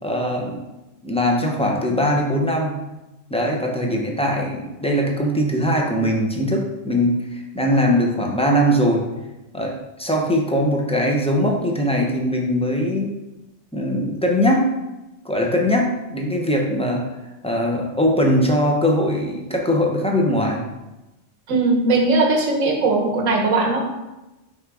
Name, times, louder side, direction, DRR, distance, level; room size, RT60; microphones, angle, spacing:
voice 1, 0.0-0.6 1.0-2.8 3.3-9.1 9.5-9.7 10.0-13.1 13.7-14.7 15.2-17.0 17.4-20.6, equal, 5° left, 0 dB, 0.5 m, -21 dB
voice 2, 21.5-23.8, right 3 dB, 85° right, 2 dB, 1.3 m, -19 dB
5.7 x 3.5 x 4.7 m, 1.0 s
omnidirectional pair, 1.3 m